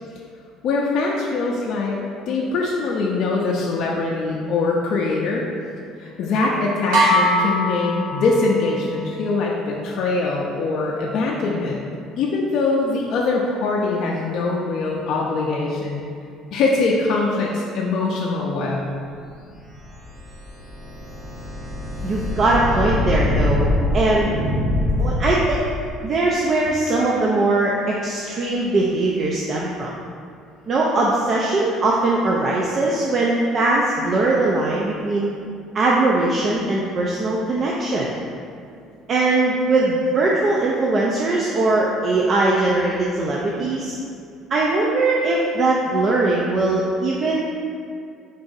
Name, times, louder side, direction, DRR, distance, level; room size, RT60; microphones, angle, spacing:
voice 1, 0.6-5.4 6.0-11.8 12.2-16.0 16.5-18.8, left 3 dB, 60° left, -3 dB, 0.4 m, -22 dB
sound 1, 6.9-8.7, equal, 85° right, 1.1 m, -20 dB
sound 2, 19.6-25.9, left 1 dB, 25° right, 1.1 m, -24 dB
voice 2, 22.0-24.3 25.0-25.7 26.0-29.9 30.7-35.3 35.7-38.1 39.1-43.9 44.5-47.4, right 2 dB, 45° right, -3 dB, 0.4 m, -20 dB
3.9 x 2.5 x 3.9 m, 2.4 s
supercardioid pair, 100°, 0 cm